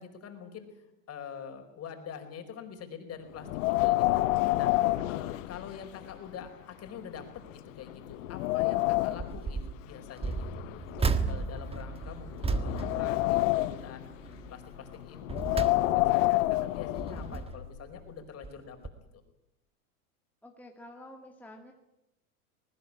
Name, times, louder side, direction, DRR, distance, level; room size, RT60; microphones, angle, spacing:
voice 1, 0.0-4.2 4.5-4.8 5.1-14.1 14.5-18.8 19.1-19.2, left 7 dB, 35° left, 6 dB, 4.8 m, -45 dB
Wind, 3.4-6.1 6.4-6.5 7.2-7.3 7.8-9.4 10.2-11.8 12.3-14.0 15.2-17.3, left 18 dB, 65° left, 1.0 m, -28 dB
sound 1, 9.1-9.7 10.2-13.9 14.2-14.5 15.0-16.3 16.8-17.8 18.4-18.6 18.8-18.9, right 4 dB, 15° right, 1.5 m, -34 dB
Piano Sounds, 11.5-18.2, left 6 dB, 90° left, 4.4 m, -50 dB
voice 2, 20.4-21.7, left 1 dB, 5° left, 1 dB, 2.1 m, -49 dB
20.5 x 19.0 x 9.8 m, 0.88 s
hypercardioid pair, 110°, 42 cm